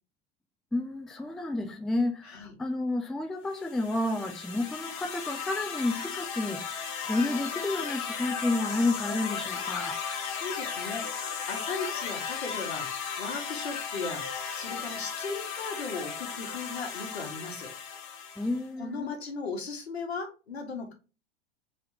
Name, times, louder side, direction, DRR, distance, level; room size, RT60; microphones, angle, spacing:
voice 1, 0.7-10.0 18.4-19.1, left 2 dB, ahead, 0.3 m, -31 dB
sound 1, 3.6-18.7, left 6 dB, 50° left, 1.0 m, -36 dB
voice 2, 10.3-12.9 13.2-14.2 14.5-17.7 18.8-20.9, left 4 dB, 80° left, 1.1 m, -37 dB
3.3 x 2.9 x 3.4 m
figure-of-eight pair, 90°, 31 cm